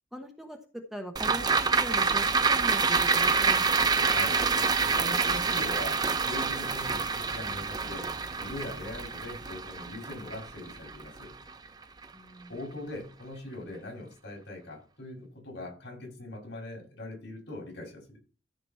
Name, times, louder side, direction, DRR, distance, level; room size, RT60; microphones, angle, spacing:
voice 1, 0.1-3.6 12.1-12.5, equal, ahead, 2 dB, 1.1 m, -40 dB
sound 1, 1.2-11.7 12.0-12.1, right 5 dB, 20° right, 0.5 m, -27 dB
voice 2, 4.0-4.4 4.8-8.1 8.4-11.3 12.5-18.2, left 1 dB, 60° left, 0 dB, 5.8 m, -41 dB
14.0 x 5.0 x 4.4 m, 0.35 s
head